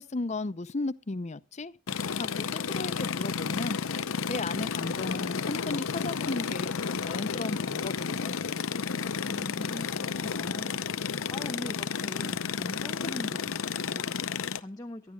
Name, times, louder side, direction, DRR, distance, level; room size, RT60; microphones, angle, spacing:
voice 1, 0.0-1.7 2.2-3.8 4.3-8.4, left 3 dB, 35° left, 0.6 m, -35 dB
sound 1, 1.9-14.6, left 6 dB, 80° left, 0.7 m, -32 dB
voice 2, 9.1-15.1, left 1 dB, 20° left, 0.9 m, -42 dB
23.5 x 12.0 x 2.3 m
head